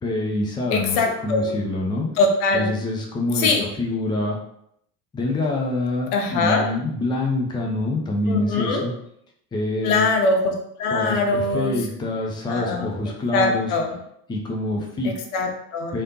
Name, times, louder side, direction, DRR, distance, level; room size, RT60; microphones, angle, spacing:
voice 1, 0.0-2.1 2.5-3.5 3.8-4.4 5.1-8.9 9.5-10.0 10.9-13.7 14.3-15.2 15.9-16.0, left 2 dB, 10° left, 0 dB, 0.5 m, -26 dB
voice 2, 0.7-1.6 2.2-2.7 3.3-3.7 6.1-6.7 8.3-8.9 9.8-11.7 12.5-12.9 13.3-14.0 15.0-16.0, left 3 dB, 60° left, 3 dB, 0.9 m, -22 dB
3.2 x 2.8 x 2.9 m, 0.72 s
figure-of-eight pair, 70°, 50 cm